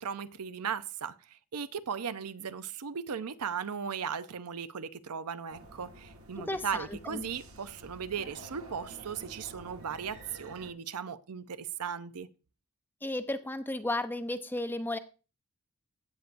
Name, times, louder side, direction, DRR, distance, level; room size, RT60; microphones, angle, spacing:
voice 1, 0.0-12.3, right 7 dB, 90° right, 0.6 m, -37 dB
sound 1, 5.5-10.7, right 1 dB, 65° right, 1.4 m, -50 dB
voice 2, 6.4-7.3 13.0-15.0, left 1 dB, 10° left, 0.5 m, -34 dB
16.0 x 8.2 x 2.6 m
head